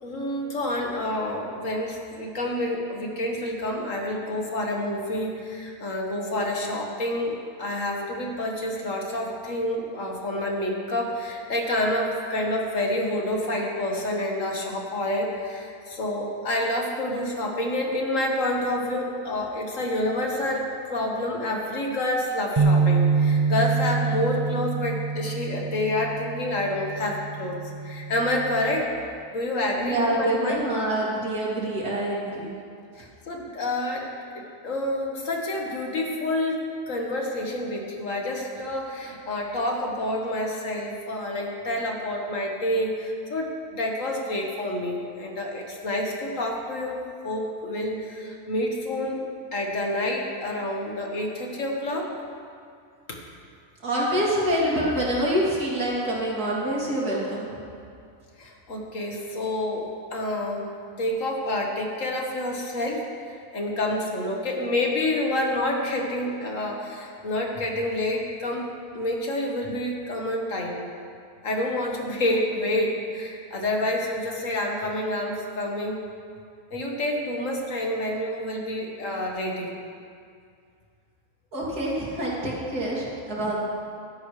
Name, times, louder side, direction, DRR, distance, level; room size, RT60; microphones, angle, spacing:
voice 1, 0.0-27.6 27.8-28.9 29.3-30.6 33.0-34.1 34.4-49.2 49.5-52.1 53.1-53.2 58.4-59.9 60.1-60.6 61.0-70.8 71.4-76.0 76.7-79.7, left 1 dB, 55° left, 0 dB, 1.9 m, -28 dB
sound 1, 22.6-28.8, right 5 dB, 45° right, 0.4 m, -26 dB
voice 2, 29.6-32.5 53.8-57.5 81.5-83.6, right 1 dB, 85° right, -6 dB, 3.5 m, -26 dB
16.0 x 13.5 x 3.3 m, 2.3 s
omnidirectional pair, 1.6 m